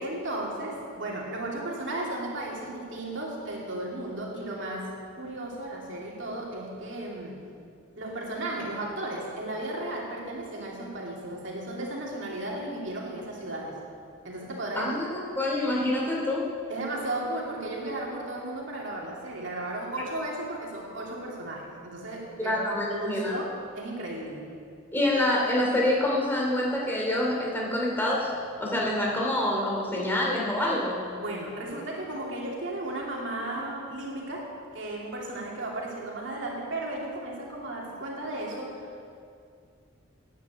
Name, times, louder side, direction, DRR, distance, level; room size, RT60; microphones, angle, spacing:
voice 1, 0.0-4.9 5.2-7.4 8.0-13.8 14.2-14.9 16.7-22.6 22.9-24.5 31.2-39.1, right 1 dB, 60° right, -3 dB, 2.7 m, -35 dB
voice 2, 14.8-16.4 22.4-23.3 24.9-28.3 28.6-31.0, left 1 dB, 10° left, -3 dB, 2.8 m, -26 dB
10.0 x 10.0 x 8.1 m, 2.3 s
head